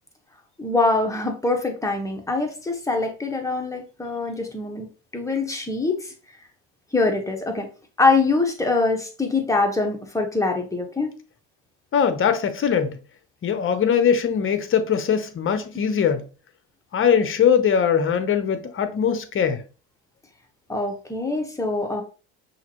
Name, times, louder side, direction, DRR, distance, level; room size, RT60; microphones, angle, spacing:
voice 1, 0.6-4.9 5.1-6.1 6.9-7.7 8.0-11.1 20.7-22.0, left 3 dB, 10° left, 1.3 m, -23 dB
voice 2, 11.9-13.0 13.4-16.2 16.9-19.6, left 7 dB, 40° left, 0.9 m, -21 dB
5.6 x 2.8 x 3.0 m
supercardioid pair, 80°, 33 cm